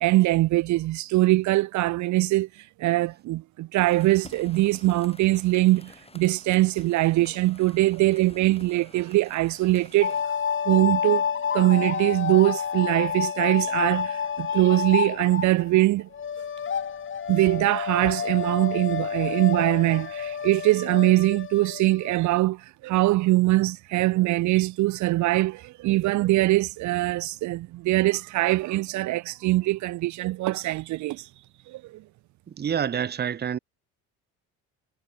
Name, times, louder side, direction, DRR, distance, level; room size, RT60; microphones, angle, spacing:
voice 1, 0.0-10.2 10.7-11.2 11.5-16.1 17.3-31.3 31.7-32.0, right 18 dB, 65° right, 0.7 m, -22 dB
sound 1, 3.8-10.2, left 3 dB, 20° left, 6.8 m, -50 dB
sound 2, 10.0-15.9 16.1-22.1, left 7 dB, 40° left, 2.1 m, -29 dB
voice 2, 32.5-33.6, right 8 dB, 30° right, 0.8 m, -27 dB
supercardioid pair, 75°, 32 cm